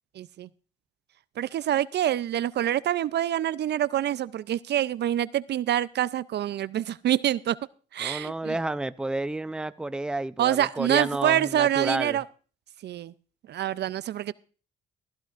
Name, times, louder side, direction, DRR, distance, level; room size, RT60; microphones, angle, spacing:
voice 1, 0.2-0.5 1.4-7.6 7.9-8.6 10.4-12.2 12.8-13.1 13.5-14.3, right 11 dB, 60° right, 0.5 m, -26 dB
voice 2, 8.0-12.2, right 2 dB, 5° right, 0.5 m, -30 dB
15.5 x 15.0 x 2.5 m
cardioid pair, 90°, 20 cm